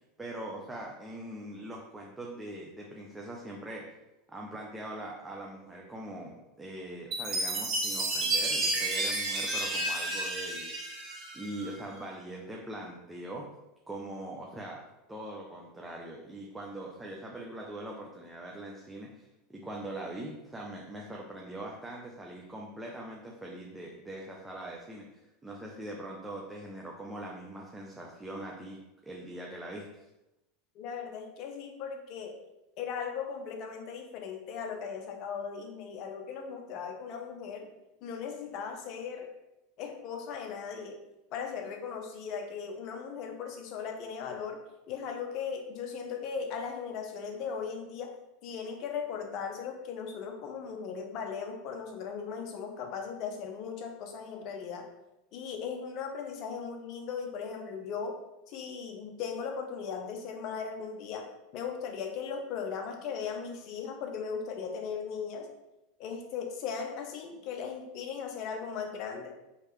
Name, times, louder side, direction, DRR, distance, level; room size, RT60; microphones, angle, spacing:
voice 1, 0.2-3.9 4.3-10.7 11.3-13.4 13.9-14.8 15.1-25.0 25.4-28.8 29.0-30.0, right 1 dB, 10° right, -2 dB, 0.7 m, -42 dB
Chime, 7.1-11.7, right 2 dB, 30° right, 1.4 m, -31 dB
voice 2, 30.7-32.4 32.8-37.7 38.0-39.3 39.8-41.0 41.3-44.6 44.9-48.2 48.4-54.9 55.3-58.2 58.5-61.3 61.5-65.5 66.0-69.3, left 6 dB, 55° left, 3 dB, 0.9 m, -38 dB
4.6 x 3.3 x 3.2 m, 0.93 s
hypercardioid pair, 105°, 0 cm